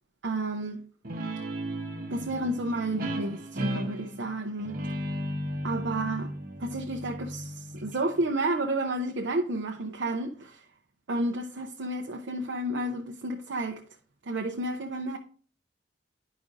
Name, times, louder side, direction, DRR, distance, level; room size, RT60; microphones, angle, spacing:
voice 1, 0.2-0.8 2.1-4.8 5.6-6.3 6.6-10.6 11.1-13.8 14.2-15.2, right 1 dB, 75° right, 0.6 m, -31 dB
Guitar, 1.0-8.2, equal, 50° right, 0.9 m, -35 dB
11.0 x 5.0 x 2.5 m
head